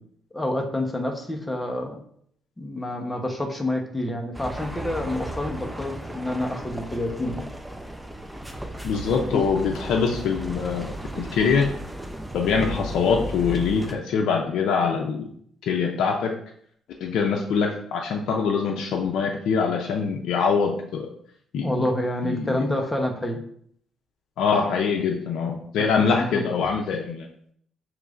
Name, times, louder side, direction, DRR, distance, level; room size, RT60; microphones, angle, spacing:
voice 1, 0.3-2.0 2.6-7.5 9.3-9.4 21.6-23.4 26.0-26.7, left 1 dB, 15° left, 2 dB, 0.9 m, -28 dB
sound 1, 4.3-14.0, equal, 10° right, 0.5 m, -35 dB
voice 2, 8.8-11.7 12.3-15.2 15.6-16.3 17.0-21.1 21.5-21.9 22.2-22.6 24.4-27.3, left 5 dB, 80° left, 1 dB, 0.5 m, -24 dB
6.4 x 3.1 x 2.5 m, 0.65 s
cardioid pair, 90°, 0 cm